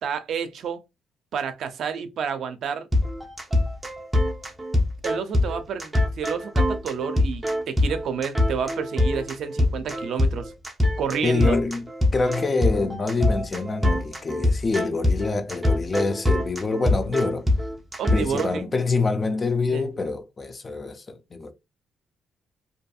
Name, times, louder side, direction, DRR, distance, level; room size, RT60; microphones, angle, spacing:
voice 1, 0.0-0.8 1.3-2.9 5.0-10.5 11.0-11.6 18.0-18.7 19.7-19.9, right 7 dB, 65° right, 0.4 m, -30 dB
sound 1, 2.9-18.6, left 1 dB, 10° right, 0.7 m, -23 dB
voice 2, 11.2-17.5 18.1-21.5, left 3 dB, 30° left, 0.5 m, -26 dB
2.6 x 2.5 x 2.3 m
cardioid pair, 90°, 0 cm